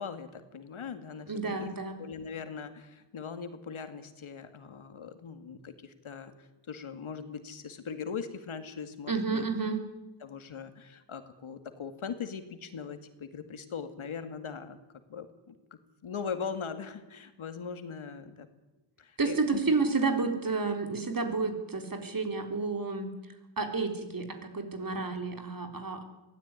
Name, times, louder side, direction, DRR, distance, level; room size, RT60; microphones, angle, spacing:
voice 1, 0.0-1.7 2.0-9.5 10.2-14.8 15.1-15.5 16.0-18.5 19.0-19.8 25.0-25.2, left 6 dB, 75° left, 9 dB, 2.4 m, -40 dB
voice 2, 1.3-2.0 9.1-9.8 19.2-23.1 23.6-26.0, right 4 dB, 45° right, 6 dB, 4.0 m, -30 dB
23.0 x 17.0 x 9.8 m, 1.1 s
wide cardioid pair, 105°, 49 cm